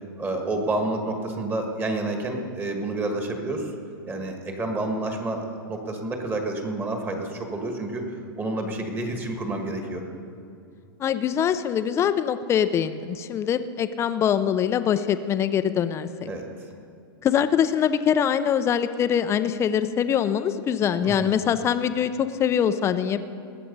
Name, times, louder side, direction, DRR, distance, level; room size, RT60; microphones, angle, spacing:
voice 1, 0.2-3.7 4.1-8.0 8.3-10.0 16.3-16.7 21.0-21.3, right 2 dB, 15° right, 3 dB, 1.6 m, -29 dB
voice 2, 11.0-16.3 17.2-23.2, left 8 dB, 20° left, 11 dB, 0.6 m, -23 dB
19.5 x 7.6 x 5.4 m, 2.4 s
hypercardioid pair, 130°, 12 cm